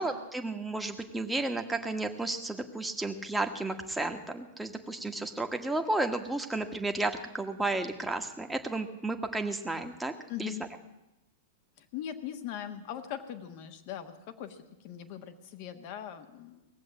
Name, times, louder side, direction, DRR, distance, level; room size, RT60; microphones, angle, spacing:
voice 1, 0.0-10.1 10.4-10.5, right 2 dB, 5° right, 5 dB, 1.3 m, -32 dB
voice 2, 10.3-10.6 11.8-16.7, left 10 dB, 50° left, 8 dB, 1.4 m, -40 dB
18.5 x 7.6 x 8.6 m, 0.96 s
hypercardioid pair, 105°, 0 cm